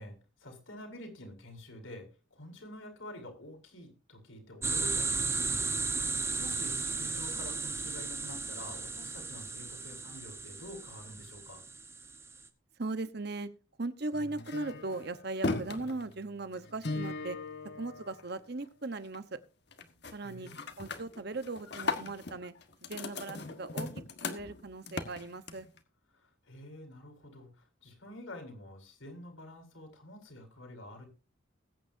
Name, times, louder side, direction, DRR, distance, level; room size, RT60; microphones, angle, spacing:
voice 1, 0.0-6.0 6.4-11.6 20.2-20.6 26.1-31.1, left 1 dB, 75° left, 3 dB, 5.2 m, -48 dB
sound 1, 4.6-12.4, right 4 dB, 10° right, 1.1 m, -35 dB
voice 2, 12.8-13.5 13.8-17.4 17.7-19.4 20.1-20.5 20.8-22.5 22.8-25.7, right 2 dB, 50° right, 12 dB, 1.1 m, -38 dB
sound 2, 14.1-18.6 19.0-19.4 19.7-20.1 20.5-25.8, left 3 dB, 50° left, 1.5 m, -38 dB
20.5 x 9.3 x 2.7 m, 0.32 s
head